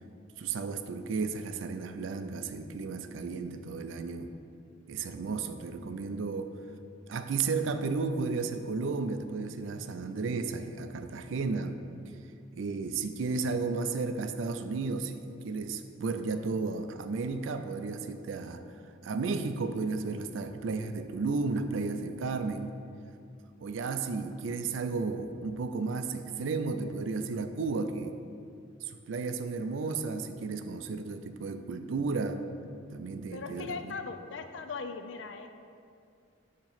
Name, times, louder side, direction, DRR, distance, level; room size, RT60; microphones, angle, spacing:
voice 1, 0.4-4.3 4.9-6.5 7.1-11.8 12.5-18.6 19.0-22.7 23.6-28.2 28.8-32.4 32.9-33.9, right 4 dB, 75° right, 9 dB, 0.4 m, -33 dB
voice 2, 33.3-35.5, left 4 dB, 65° left, 7 dB, 0.4 m, -39 dB
6.9 x 2.9 x 5.7 m, 2.4 s
head